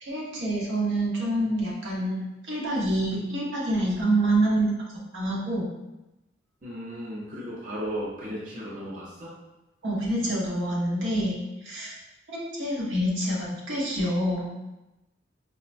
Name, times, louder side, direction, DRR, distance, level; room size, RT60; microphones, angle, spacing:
voice 1, 0.0-4.7 5.1-5.7 9.8-11.9 12.3-14.5, right 1 dB, 85° right, -5 dB, 1.0 m, -27 dB
voice 2, 6.6-9.3, equal, 45° right, -6 dB, 0.7 m, -35 dB
4.9 x 2.1 x 2.5 m, 0.98 s
head